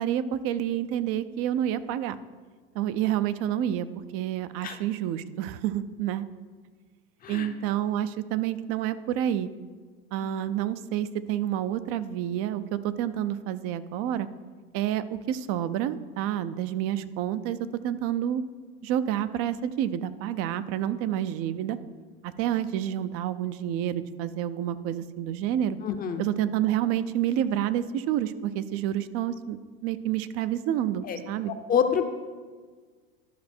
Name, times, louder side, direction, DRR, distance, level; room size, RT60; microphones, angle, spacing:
voice 1, 0.0-2.2 2.7-3.9 4.1-6.3 7.3-9.5 10.1-14.3 14.7-17.6 17.8-18.4 18.8-21.8 22.2-25.8 26.2-29.6 29.8-31.5, right 11 dB, 50° right, 14 dB, 0.6 m, -29 dB
voice 2, 25.8-26.2 31.0-31.2 31.7-32.1, left 7 dB, 30° left, 7 dB, 0.6 m, -26 dB
12.0 x 5.2 x 4.4 m, 1.5 s
supercardioid pair, 110°, 30 cm